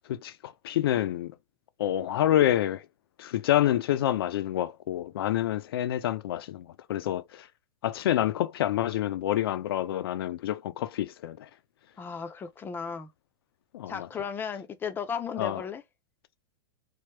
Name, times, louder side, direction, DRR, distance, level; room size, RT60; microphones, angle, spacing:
voice 1, 0.1-1.3 1.8-2.8 3.2-7.5 7.8-11.5 13.7-14.1 15.4-15.6, left 12 dB, 85° left, 0.5 m, -27 dB
voice 2, 12.0-13.1 13.9-15.8, left 6 dB, 15° left, 0.5 m, -35 dB
3.1 x 2.0 x 3.3 m
supercardioid pair, 140°, 12 cm